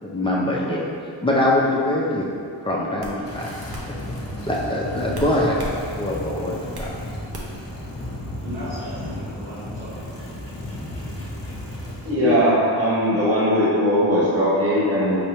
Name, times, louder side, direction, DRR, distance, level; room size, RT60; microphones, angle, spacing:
voice 1, 0.0-0.8 1.2-2.3 2.6-3.5 3.9-4.0 4.5-5.6 6.0-6.9, left 1 dB, 10° left, -4 dB, 0.4 m, -23 dB
sound 1, 2.2-2.4 3.0-3.2 3.7-3.9 5.1-5.8 6.1-6.9 7.3-7.7, equal, 50° right, 0.8 m, -35 dB
sound 2, 3.2-12.1, left 1 dB, 30° left, 0.8 m, -33 dB
voice 2, 8.4-11.2, equal, 75° right, -11 dB, 1.2 m, -38 dB
voice 3, 12.0-15.2, equal, 30° right, -9 dB, 1.1 m, -19 dB
5.4 x 3.3 x 2.9 m, 2.4 s
wide cardioid pair, 155°, 47 cm